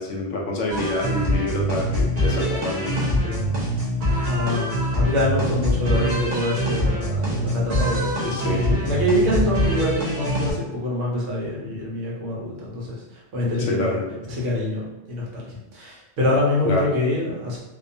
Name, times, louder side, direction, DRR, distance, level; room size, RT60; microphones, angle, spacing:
voice 1, 0.0-3.0 8.2-8.6 13.6-14.1 16.6-16.9, left 2 dB, 70° left, 0 dB, 0.9 m, -27 dB
sound 1, 0.7-10.5, equal, 40° right, 0.7 m, -24 dB
voice 2, 2.9-3.9 4.2-12.9 13.3-14.0 14.3-17.6, left 1 dB, 70° right, -4 dB, 1.1 m, -25 dB
2.7 x 2.2 x 2.6 m, 1.0 s
omnidirectional pair, 1.3 m